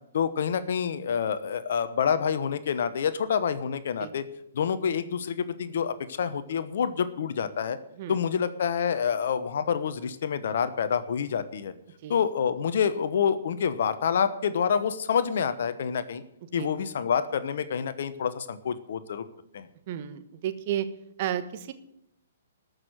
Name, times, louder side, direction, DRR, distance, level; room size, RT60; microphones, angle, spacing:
voice 1, 0.1-4.2 4.5-7.8 8.1-11.7 12.1-16.2 16.5-19.2 19.5-19.7, left 7 dB, 65° left, 12 dB, 1.0 m, -27 dB
voice 2, 19.9-20.9 21.2-21.7, right 11 dB, 45° right, 10 dB, 1.4 m, -32 dB
14.0 x 6.6 x 9.2 m, 0.79 s
hypercardioid pair, 130°, 0 cm